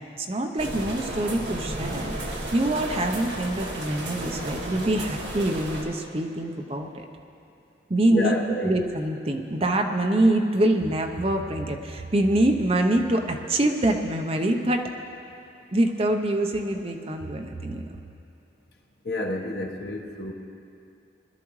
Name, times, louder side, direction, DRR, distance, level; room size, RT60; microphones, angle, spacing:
voice 1, 0.2-7.1 7.9-8.4 8.6-14.9 15.7-17.9, right 1 dB, 30° right, 4 dB, 0.7 m, -25 dB
sound 1, 0.6-5.8, right 1 dB, 60° right, 1.9 m, -33 dB
voice 2, 8.1-8.8 19.0-20.3, left 1 dB, 55° left, 1 dB, 1.2 m, -29 dB
21.0 x 13.0 x 3.2 m, 2.6 s
head